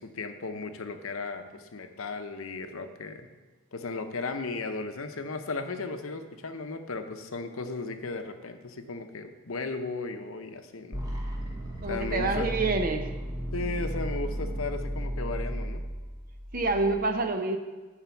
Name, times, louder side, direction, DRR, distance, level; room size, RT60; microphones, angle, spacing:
voice 1, 0.0-3.3 3.7-11.0 11.9-12.5 13.5-15.8, left 3 dB, 65° left, 7 dB, 0.8 m, -35 dB
sound 1, 10.9-16.9, equal, 20° right, 1.0 m, -34 dB
voice 2, 11.8-13.1 16.5-17.6, right 3 dB, 40° right, 6 dB, 0.7 m, -27 dB
10.5 x 4.3 x 7.0 m, 1.3 s
head